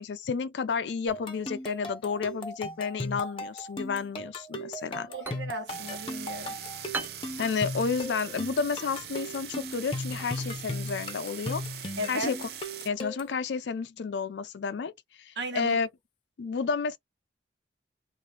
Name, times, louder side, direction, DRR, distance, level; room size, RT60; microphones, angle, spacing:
voice 1, 0.0-5.1 7.4-11.6 12.1-12.5 12.8-14.9 15.2-15.9 16.4-17.0, left 5 dB, 85° left, 0.4 m, -31 dB
sound 1, 1.1-13.4, left 1 dB, 30° left, 0.7 m, -37 dB
sound 2, 4.9-12.4, right 3 dB, 10° right, 0.7 m, -45 dB
voice 2, 5.1-6.6 12.0-12.3 15.4-15.8, right 1 dB, 90° right, 1.1 m, -35 dB
sound 3, 5.7-12.9, right 10 dB, 60° right, 0.5 m, -42 dB
2.8 x 2.5 x 3.2 m
head